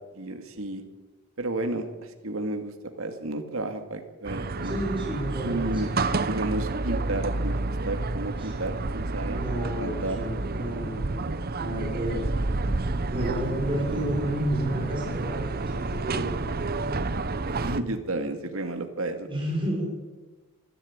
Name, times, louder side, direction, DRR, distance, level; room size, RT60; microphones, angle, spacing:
voice 1, 0.1-0.8 1.4-4.8 5.4-5.9 6.3-9.4 9.8-10.2 13.2-13.3 17.4-19.3, right 2 dB, 70° right, 6 dB, 2.3 m, -32 dB
sound 1, 4.2-17.8, right 3 dB, 45° right, 0.9 m, -29 dB
voice 2, 4.6-5.8 8.4-8.6 9.2-11.2 11.6-12.2 13.1-16.4 19.3-19.8, right 1 dB, 25° right, -2 dB, 6.1 m, -31 dB
26.5 x 12.0 x 8.9 m, 1.2 s
head